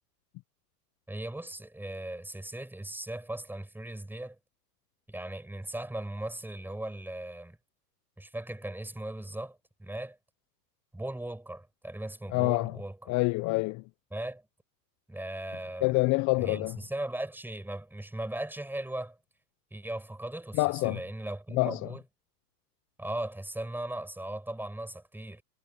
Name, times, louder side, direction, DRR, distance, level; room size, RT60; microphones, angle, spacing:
voice 1, 1.1-4.4 5.1-7.6 8.2-10.2 10.9-13.1 14.1-14.4 15.1-16.0 16.4-19.2 19.7-22.0 23.0-25.4, right 1 dB, 5° right, 6.3 m, -38 dB
voice 2, 12.3-12.8 13.1-13.8 15.8-16.8 20.6-21.0 21.5-21.8, left 25 dB, 35° left, 0.8 m, -26 dB
hypercardioid pair, 105°, 49 cm